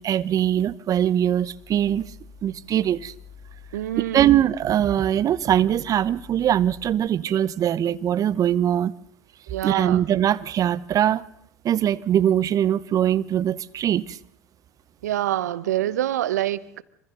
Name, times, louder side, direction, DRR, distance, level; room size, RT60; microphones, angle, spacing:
voice 1, 0.0-2.1 2.4-3.1 4.1-8.9 9.6-11.2 11.6-14.2, right 10 dB, 40° right, 0.9 m, -22 dB
sound 1, 1.3-6.9, left 6 dB, 85° left, 5.4 m, -48 dB
voice 2, 3.7-4.3 7.2-7.4 9.5-10.0 15.0-16.8, right 13 dB, 80° right, 1.0 m, -26 dB
27.0 x 25.5 x 3.9 m
hypercardioid pair, 80°, 9 cm